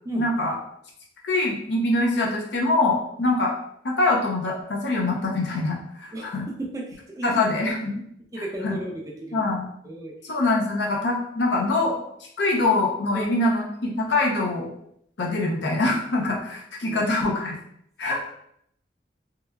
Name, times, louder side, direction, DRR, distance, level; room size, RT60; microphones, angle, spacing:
voice 1, 0.1-0.5 1.2-3.5 3.8-6.5 7.2-8.0 8.6-8.8 9.3-9.7 10.2-12.0 12.4-14.7 15.2-17.6 18.0-18.2, left 2 dB, 80° left, -1 dB, 0.6 m, -24 dB
voice 2, 6.6-7.4 8.3-8.9 9.2-9.5 9.8-10.1 13.1-13.3 16.8-17.0 18.1-18.2, right 1 dB, 20° right, -1 dB, 0.4 m, -34 dB
3.1 x 2.3 x 2.2 m, 0.71 s
head